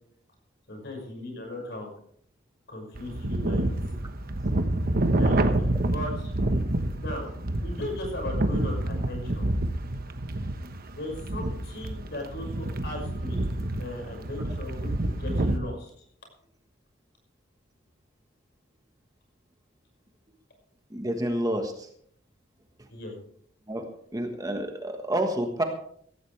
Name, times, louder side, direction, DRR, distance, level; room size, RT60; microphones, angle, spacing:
voice 1, 0.7-1.9 2.7-3.8 5.1-6.3 7.0-7.3 7.6-9.4 10.9-15.9 22.9-23.1, left 1 dB, 60° left, 1 dB, 5.9 m, -37 dB
sound 1, 2.9-15.6, right 1 dB, 50° right, 1.2 m, -28 dB
voice 2, 20.9-21.9 23.7-23.8 24.1-25.6, right 1 dB, 20° right, 4 dB, 1.4 m, -29 dB
16.0 x 16.0 x 3.4 m, 0.64 s
head